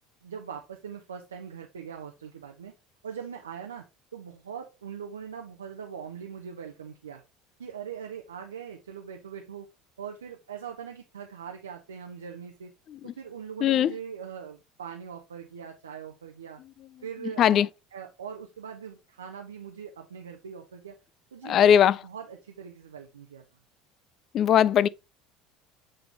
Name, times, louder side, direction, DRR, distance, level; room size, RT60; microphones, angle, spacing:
voice 1, 0.2-2.7 3.0-3.9 4.1-7.2 7.6-9.7 10.0-12.7 13.0-16.6 17.0-17.6 17.9-21.0 21.3-21.8 22.0-23.4, right 7 dB, 75° right, 0.7 m, -41 dB
voice 2, 13.6-13.9 17.4-17.7 21.4-22.0 24.3-24.9, left 9 dB, 40° left, 0.4 m, -20 dB
8.5 x 3.9 x 3.0 m
figure-of-eight pair, 65°, 0 cm